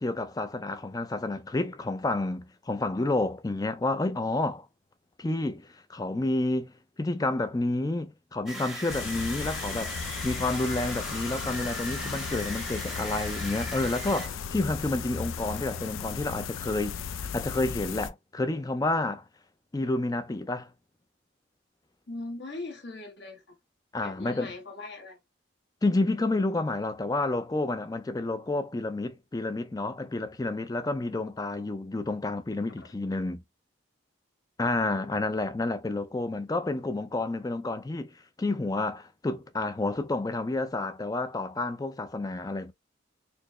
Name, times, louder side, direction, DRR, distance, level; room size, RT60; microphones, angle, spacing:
voice 1, 0.0-4.7 5.2-6.7 7.0-17.0 17.3-19.2 19.7-20.7 23.9-24.5 25.8-33.4 34.6-42.7, left 2 dB, 20° left, 0.4 m, -30 dB
sound 1, 8.5-14.3, right 1 dB, ahead, 0.8 m, -39 dB
sound 2, 8.9-18.1, left 6 dB, 85° left, 0.4 m, -36 dB
voice 2, 22.1-23.6 24.0-25.2 34.9-35.5, left 2 dB, 60° left, 1.2 m, -40 dB
4.4 x 2.0 x 3.0 m
head